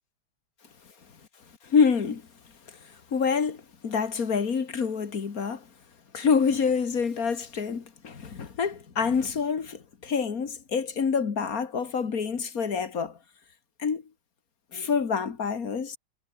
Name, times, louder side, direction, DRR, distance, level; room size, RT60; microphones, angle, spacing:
voice 1, 1.7-2.2 3.1-5.6 6.1-13.1 13.8-14.0 14.7-16.0, left 6 dB, 45° left, 2.3 m, -27 dB
omnidirectional pair, 2.2 m